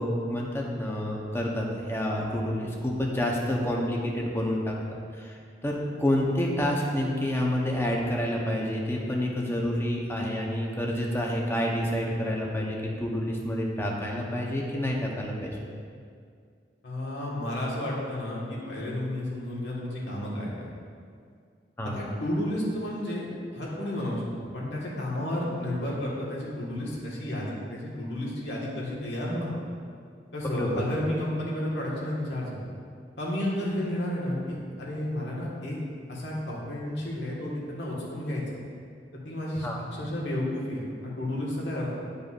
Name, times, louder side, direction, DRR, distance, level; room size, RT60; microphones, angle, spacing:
voice 1, 0.0-4.8 5.1-15.6 21.8-22.0 30.6-30.9 39.6-39.8, left 1 dB, 15° left, -2 dB, 0.9 m, -28 dB
voice 2, 16.8-20.7 21.8-24.3 24.5-29.5 30.3-32.6 33.2-35.8 36.1-38.4 39.2-42.0, left 1 dB, 75° left, -5 dB, 1.7 m, -32 dB
11.5 x 5.3 x 2.5 m, 2.2 s
head